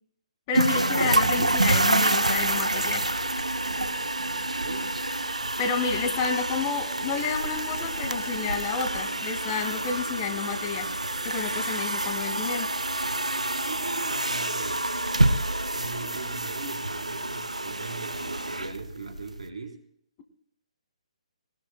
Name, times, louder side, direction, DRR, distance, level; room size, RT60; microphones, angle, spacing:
voice 1, 0.5-3.0 5.6-10.9 11.2-12.7, left 5 dB, 30° left, 6 dB, 2.0 m, -30 dB
sound 1, 0.5-19.4, right 2 dB, 85° right, 0.8 m, -27 dB
voice 2, 4.5-4.9 13.6-14.9 15.7-19.8, right 4 dB, 65° right, 4 dB, 3.6 m, -39 dB
21.0 x 19.5 x 2.2 m, 0.66 s
figure-of-eight pair, 135°, 4 cm